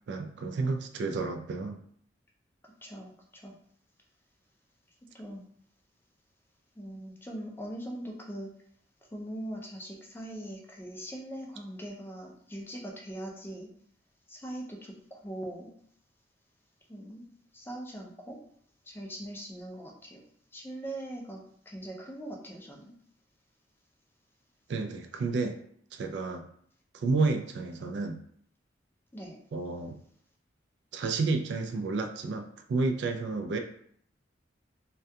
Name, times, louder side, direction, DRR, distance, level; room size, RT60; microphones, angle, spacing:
voice 1, 0.1-1.8 24.7-25.6 25.9-26.4 26.9-28.2 29.5-30.0 30.9-33.6, right 3 dB, 65° right, 6 dB, 0.3 m, -31 dB
voice 2, 2.8-3.6 5.1-5.5 6.8-8.5 9.1-13.7 14.3-15.7 16.9-17.3 17.5-18.4 18.8-20.2 20.5-22.9 27.8-27.9 29.1-29.4, right 1 dB, 10° left, -1 dB, 0.4 m, -41 dB
2.3 x 2.2 x 2.6 m, 0.64 s
head